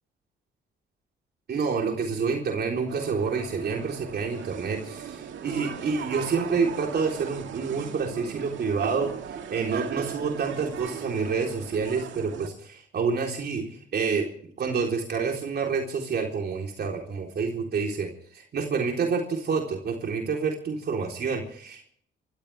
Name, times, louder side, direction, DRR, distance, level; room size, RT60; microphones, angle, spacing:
voice 1, 1.5-9.1 9.5-14.3 14.6-18.1 18.3-21.8, right 5 dB, 55° right, 1 dB, 3.8 m, -28 dB
sound 1, 2.9-12.5, right 8 dB, 70° right, 2.1 m, -38 dB
27.5 x 15.0 x 3.5 m, 0.63 s
cardioid pair, 90°, 20 cm